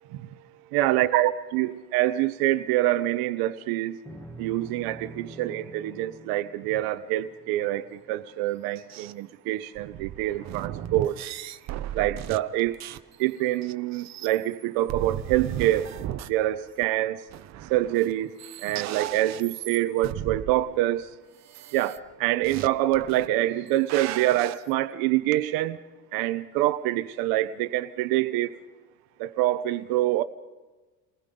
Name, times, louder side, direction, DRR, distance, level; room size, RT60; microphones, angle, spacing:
voice 1, 0.7-4.0 4.4-11.2 11.9-12.8 13.2-15.9 16.3-17.3 17.7-21.2 21.7-25.8 26.1-28.6 29.2-30.2, right 15 dB, 85° right, 1.0 m, -26 dB
sound 1, 4.0-8.5, right 2 dB, 5° left, 1.8 m, -46 dB
sound 2, 8.8-9.1 9.8-13.1 13.6-14.6 14.9-16.3 16.8-16.9 17.3-18.1 18.4-20.5 21.5-22.0 22.4-22.7 22.9-23.3 23.6-24.5, right 12 dB, 50° right, 1.0 m, -36 dB
29.0 x 20.5 x 5.4 m
cardioid pair, 150°, 35 cm